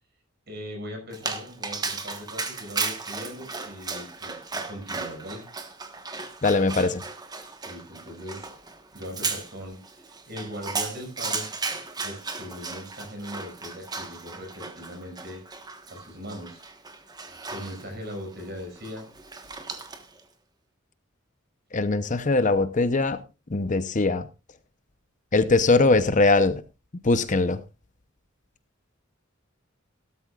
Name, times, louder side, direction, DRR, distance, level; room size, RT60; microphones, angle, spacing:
voice 1, 0.5-5.4 7.7-8.5 8.9-11.5 12.0-15.4 15.9-16.6 17.1-17.2 17.5-19.1, equal, 55° right, 5.9 m, -39 dB
Dog, 1.1-20.2, right 4 dB, 20° right, 1.3 m, -35 dB
voice 2, 6.4-7.0 21.7-23.2 23.5-24.3 25.3-26.6 27.0-27.6, left 3 dB, 40° left, 0.8 m, -21 dB
16.5 x 13.0 x 2.4 m
head